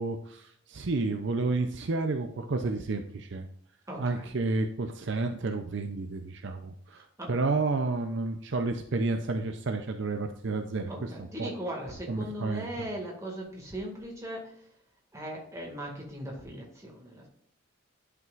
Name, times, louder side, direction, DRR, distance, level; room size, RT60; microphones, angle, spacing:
voice 1, 0.0-3.5 4.0-11.5 12.1-12.9, right 3 dB, 55° right, 6 dB, 0.6 m, -31 dB
voice 2, 3.9-4.3 6.9-7.3 10.9-14.7 15.1-17.3, equal, 15° right, -1 dB, 2.0 m, -39 dB
10.5 x 5.9 x 2.5 m, 0.70 s
head